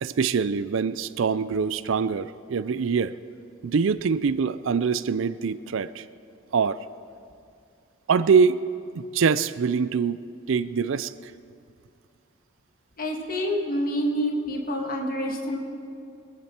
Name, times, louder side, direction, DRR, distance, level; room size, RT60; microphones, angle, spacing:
voice 1, 0.0-3.2 3.6-6.0 6.5-6.8 8.1-8.6 9.0-10.2 10.5-11.3, right 5 dB, 65° right, 16 dB, 0.4 m, -24 dB
voice 2, 13.0-15.6, equal, 45° left, 1 dB, 1.8 m, -27 dB
22.5 x 10.5 x 4.4 m, 2.4 s
head